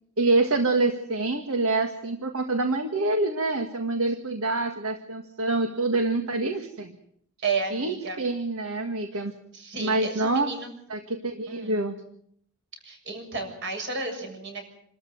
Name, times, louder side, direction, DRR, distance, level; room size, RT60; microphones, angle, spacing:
voice 1, 0.2-7.0 7.7-9.3 9.8-10.5 10.9-12.0, right 2 dB, 70° right, 6 dB, 1.8 m, -26 dB
voice 2, 7.4-8.2 9.1-9.2 9.5-10.7 11.5-12.0 12.8-14.7, right 4 dB, 55° right, 4 dB, 7.0 m, -32 dB
27.5 x 13.5 x 9.3 m, 0.67 s
head